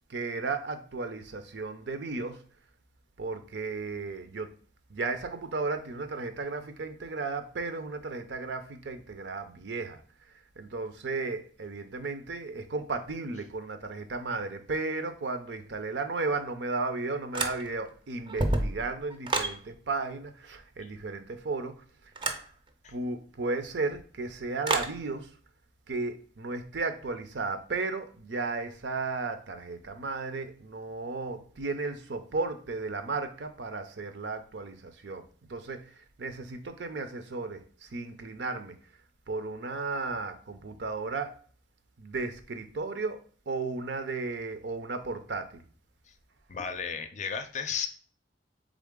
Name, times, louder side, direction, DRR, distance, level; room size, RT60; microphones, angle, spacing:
voice 1, 0.1-2.4 3.2-4.5 4.9-10.0 10.6-21.7 22.9-25.3 25.9-35.2 35.5-35.8 36.2-38.7 39.3-41.3 42.0-43.2 43.5-45.6, right 3 dB, 75° right, 0.6 m, -34 dB
sound 1, 17.3-17.9 18.3-19.6 22.2-22.5 24.6-25.0, right 2 dB, 30° right, 0.5 m, -29 dB
voice 2, 46.5-47.9, left 6 dB, 40° left, 0.5 m, -34 dB
3.8 x 3.7 x 3.6 m
head